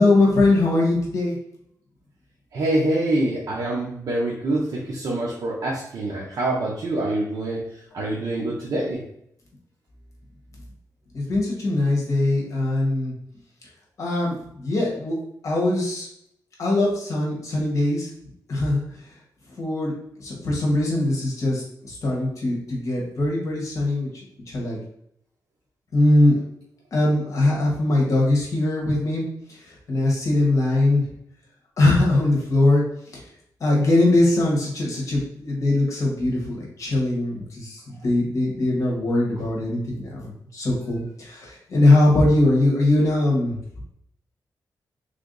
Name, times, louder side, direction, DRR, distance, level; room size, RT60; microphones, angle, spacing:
voice 1, 0.0-1.3 11.1-13.1 14.0-15.2 15.4-16.1 16.6-18.1 18.5-18.8 19.6-19.9 20.2-24.1 24.5-24.8 25.9-26.4 26.9-29.2 29.9-31.0 31.8-32.8 33.6-43.6, left 2 dB, 50° left, -3 dB, 1.1 m, -21 dB
voice 2, 2.5-7.7 7.9-9.0, right 1 dB, 60° right, -5 dB, 0.8 m, -25 dB
3.4 x 2.6 x 3.8 m, 0.72 s
wide cardioid pair, 175°, 7 cm